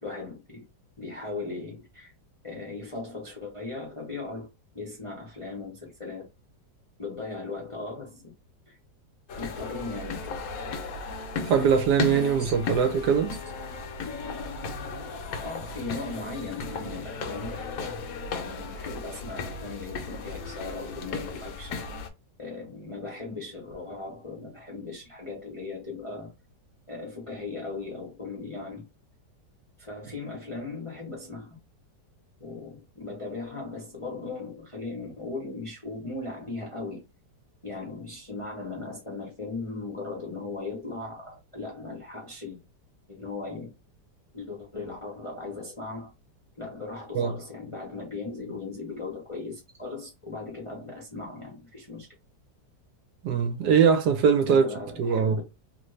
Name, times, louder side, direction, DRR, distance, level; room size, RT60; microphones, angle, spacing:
voice 1, 0.0-0.6 1.0-2.1 2.4-4.5 4.7-6.2 7.0-8.3 8.7-8.8 9.4-10.4 12.4-12.5 15.4-18.0 18.3-21.8 22.4-26.3 26.9-28.9 29.8-31.6 32.4-37.0 37.6-42.6 43.1-43.7 44.3-46.1 46.6-52.1 54.5-55.4, left 3 dB, 30° left, 0.6 m, -38 dB
sound 1, 9.3-22.1, left 4 dB, 65° left, 0.9 m, -35 dB
voice 2, 11.4-13.3 47.1-47.3 53.2-54.6 55.0-55.4, right 6 dB, 75° right, 1.2 m, -22 dB
2.9 x 2.6 x 3.1 m
omnidirectional pair, 1.9 m